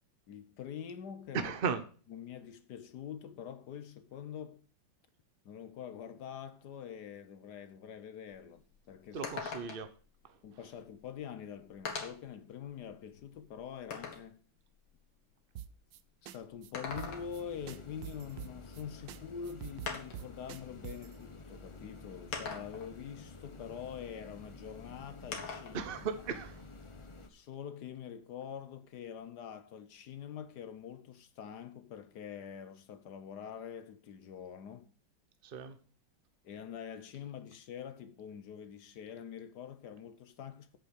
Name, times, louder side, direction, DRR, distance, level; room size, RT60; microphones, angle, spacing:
voice 1, 0.3-1.5 2.1-4.6 5.4-9.3 10.4-14.4 16.2-25.9 27.3-34.9 36.4-40.8, left 8 dB, 65° left, 1.3 m, -45 dB
voice 2, 1.3-1.8 9.1-9.9 25.7-26.6 35.4-35.8, right 6 dB, 50° right, 0.7 m, -36 dB
sound 1, 8.3-8.4 8.7-8.8 9.2-10.0 11.0-11.1 11.9-12.3 12.9-14.3 16.5-17.5 19.0-19.1 19.9-20.3 21.3-21.4 22.3-22.9 25.3-25.8 26.2-27.3, left 5 dB, 80° left, 2.5 m, -42 dB
sound 2, 15.6-16.0 16.3-16.4 16.6-16.7 17.0-17.4 17.7-18.8 19.1-19.2 19.4-21.1, right 11 dB, 75° right, 1.4 m, -45 dB
sound 3, 16.9-27.3, left 3 dB, 40° left, 0.4 m, -51 dB
8.3 x 7.9 x 6.5 m
omnidirectional pair, 2.1 m